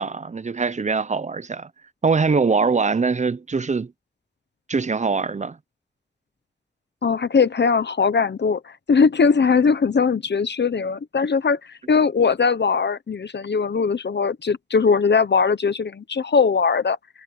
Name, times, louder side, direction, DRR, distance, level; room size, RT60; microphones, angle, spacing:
voice 1, 0.0-1.7 2.0-3.9 4.7-5.6, right 4 dB, 40° right, 0.6 m, -22 dB
voice 2, 7.0-17.2, left 5 dB, 70° left, 0.9 m, -20 dB
wide cardioid pair, 95°, 18 cm